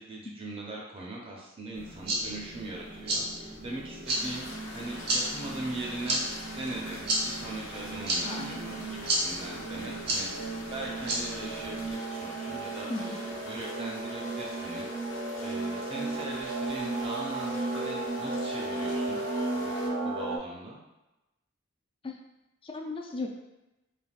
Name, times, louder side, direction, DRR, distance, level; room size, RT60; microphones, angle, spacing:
voice 1, 0.0-4.5 4.7-6.2 6.5-19.2 19.5-20.8, right 2 dB, 30° right, -3 dB, 0.6 m, -40 dB
sound 1, 1.7-11.9, right 1 dB, 55° right, 0.8 m, -34 dB
sound 2, 2.1-20.4, right 2 dB, 75° right, 0.4 m, -36 dB
sound 3, 4.1-19.9, left 2 dB, 75° left, 0.6 m, -45 dB
voice 2, 8.3-8.9 12.9-13.2 22.0-22.1 22.6-23.3, left 3 dB, 25° left, 2 dB, 0.3 m, -37 dB
3.3 x 2.4 x 2.3 m, 0.98 s
head